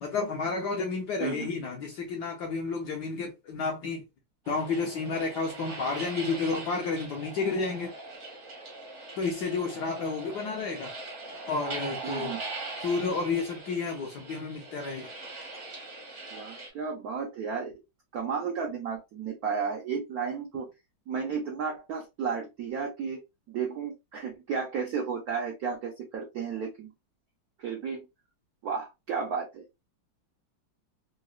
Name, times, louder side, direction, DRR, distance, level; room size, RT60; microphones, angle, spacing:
voice 1, 0.0-4.0 4.5-7.9 9.2-10.9 11.5-12.3 12.8-15.1, left 4 dB, 70° left, 1.0 m, -31 dB
sound 1, 4.5-16.7, right 3 dB, 45° right, 0.7 m, -41 dB
voice 2, 12.0-12.4 16.3-17.7 18.1-20.7 21.1-26.9 27.6-28.0 28.6-29.6, right 6 dB, 75° right, 0.8 m, -33 dB
3.9 x 2.0 x 2.3 m
omnidirectional pair, 2.3 m